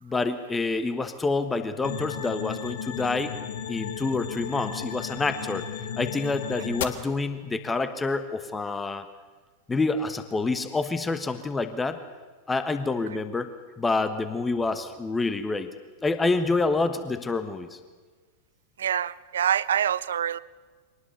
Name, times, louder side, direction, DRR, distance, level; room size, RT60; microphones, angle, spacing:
voice 1, 0.0-3.3 3.7-5.7 6.0-9.0 9.7-12.0 12.5-13.5 13.8-15.7 16.0-17.8, left 3 dB, 15° left, 10 dB, 1.3 m, -27 dB
sound 1, 1.8-6.8, left 8 dB, 55° left, 1.5 m, -34 dB
voice 2, 18.8-20.4, right 9 dB, 65° right, 20 dB, 0.6 m, -25 dB
24.0 x 19.5 x 6.9 m, 1.4 s
figure-of-eight pair, 90°, 0 cm